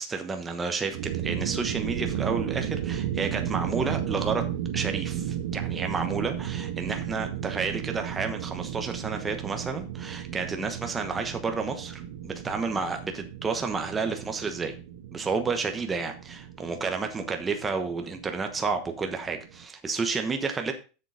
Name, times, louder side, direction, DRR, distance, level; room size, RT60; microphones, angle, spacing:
voice 1, 0.0-4.4 4.7-14.7 15.1-20.7, right 4 dB, 15° right, 5 dB, 1.1 m, -31 dB
sound 1, 0.8-19.6, right 10 dB, 80° right, 1.4 m, -34 dB
7.6 x 6.8 x 5.0 m, 0.33 s
supercardioid pair, 150°, 0 cm